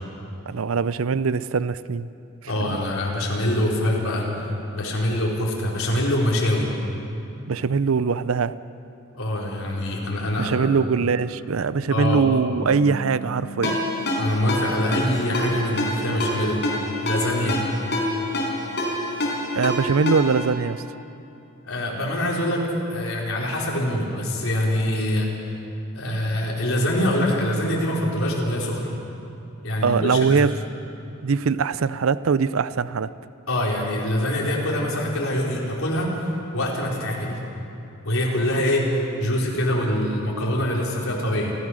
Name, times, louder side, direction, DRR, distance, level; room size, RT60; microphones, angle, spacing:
voice 1, 0.5-2.1 2.4-2.8 7.5-8.6 10.4-13.8 19.5-20.8 29.8-30.6 31.2-33.1, right 5 dB, 75° right, 16 dB, 0.5 m, -22 dB
voice 2, 2.5-6.7 9.1-10.7 11.9-12.3 14.2-16.6 17.1-17.6 21.6-22.6 22.9-25.3 25.9-29.0 29.6-30.5 33.5-36.1 36.5-37.4 38.0-41.5, left 1 dB, 80° left, -3 dB, 4.2 m, -24 dB
Bass guitar, 12.6-18.8, right 2 dB, 25° left, 5.0 m, -43 dB
Ringtone, 13.6-20.5, left 1 dB, 55° left, 5.0 m, -27 dB
28.5 x 14.5 x 6.4 m, 2.8 s
head